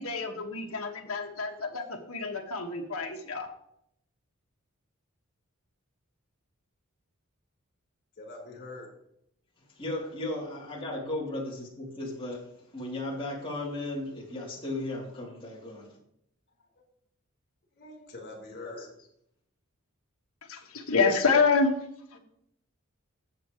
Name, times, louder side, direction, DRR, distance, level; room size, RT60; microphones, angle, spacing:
voice 1, 0.0-3.5 20.4-21.7, left 4 dB, 70° left, 2.0 m, -27 dB
voice 2, 8.2-8.9 17.8-18.9, left 2 dB, 50° left, 4.6 m, -43 dB
voice 3, 9.8-15.9 18.7-18.9, left 2 dB, 25° left, 3.5 m, -36 dB
13.5 x 8.4 x 3.3 m
head